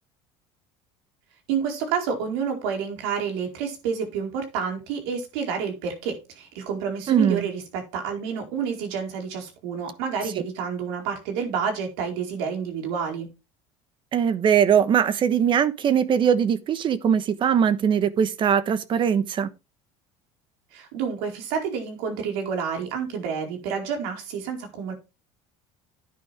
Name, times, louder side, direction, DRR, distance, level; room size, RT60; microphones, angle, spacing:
voice 1, 1.5-13.3 20.7-24.9, right 6 dB, 85° right, 4.6 m, -29 dB
voice 2, 7.1-7.5 14.1-19.5, right 8 dB, 40° right, 1.2 m, -21 dB
11.0 x 9.5 x 3.5 m
cardioid pair, 125°, 13 cm